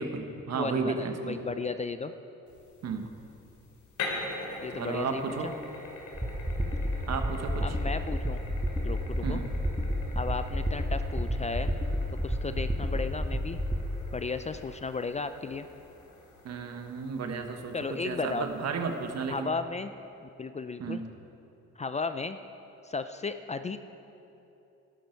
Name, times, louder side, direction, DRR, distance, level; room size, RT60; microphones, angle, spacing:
voice 1, 0.0-1.4 2.8-3.1 4.7-5.6 6.6-6.7 7.1-7.8 9.2-9.4 16.4-19.5 20.8-21.0, right 5 dB, 60° right, 5 dB, 1.3 m, -33 dB
voice 2, 0.5-2.1 4.6-5.5 7.6-8.4 8.8-9.4 10.2-11.7 12.2-13.6 14.1-15.7 17.7-18.5 19.3-19.9 20.2-21.0 21.8-22.4 22.8-23.8, left 4 dB, 25° left, 10 dB, 0.4 m, -34 dB
sound 1, 2.5-19.4, left 2 dB, 75° left, 2.6 m, -44 dB
sound 2, 6.1-13.8, equal, 5° right, 1.2 m, -30 dB
12.0 x 11.5 x 4.6 m, 2.9 s
cardioid pair, 90°, 30 cm